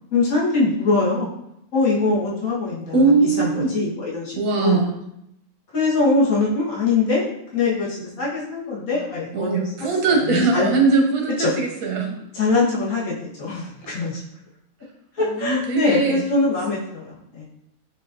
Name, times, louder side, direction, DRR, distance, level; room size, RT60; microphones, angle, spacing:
voice 1, 0.1-1.3 1.7-4.8 5.7-7.3 7.5-9.7 10.3-10.7 11.4-11.5 12.3-14.2 15.2-17.5, left 3 dB, 70° left, -7 dB, 1.8 m, -22 dB
voice 2, 2.9-3.7 4.3-5.0 9.3-12.2 15.2-16.2, right 4 dB, 90° right, 1 dB, 1.4 m, -20 dB
6.5 x 2.7 x 2.5 m, 0.78 s
omnidirectional pair, 1.6 m